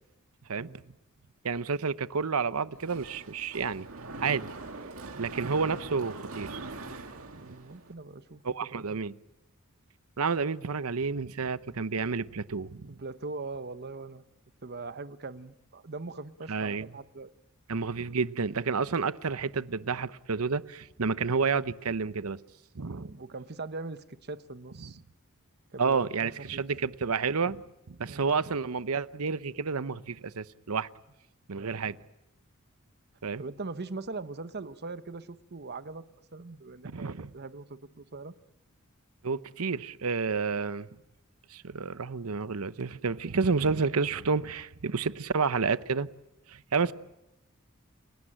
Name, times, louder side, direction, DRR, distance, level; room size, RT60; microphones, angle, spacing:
voice 1, 0.6-0.9 7.4-8.8 12.9-14.2 14.6-17.3 22.8-25.0 25.7-26.6 28.1-28.4 31.5-31.9 33.4-36.0 36.3-38.3 46.8-46.9, right 3 dB, 50° right, 1.0 m, -41 dB
voice 2, 1.4-3.9 4.2-4.5 5.2-6.6 8.4-9.1 10.2-12.9 16.5-16.9 17.7-22.4 22.7-23.1 24.8-24.9 25.8-27.6 27.9-30.9 31.5-32.0 33.2-33.4 36.9-37.3 39.2-40.9 41.5-46.1 46.5-46.9, right 5 dB, 90° right, 0.8 m, -30 dB
Mechanisms, 2.7-7.9, right 3 dB, 70° right, 2.3 m, -42 dB
30.0 x 18.0 x 9.0 m
head